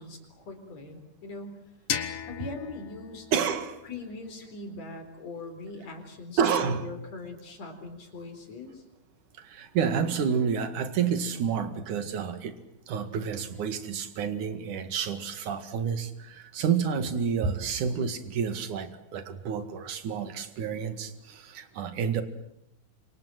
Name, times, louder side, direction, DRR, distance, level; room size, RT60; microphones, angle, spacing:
voice 1, 0.0-1.6 2.3-3.3 3.8-8.8, left 3 dB, 45° left, 6 dB, 5.2 m, -41 dB
sound 1, 1.9-4.7, left 9 dB, 65° left, 3.3 m, -37 dB
voice 2, 3.3-3.8 6.4-6.8 9.4-12.5 12.9-22.2, right 7 dB, 55° right, 9 dB, 3.2 m, -29 dB
28.5 x 25.5 x 7.8 m, 0.77 s
omnidirectional pair, 4.4 m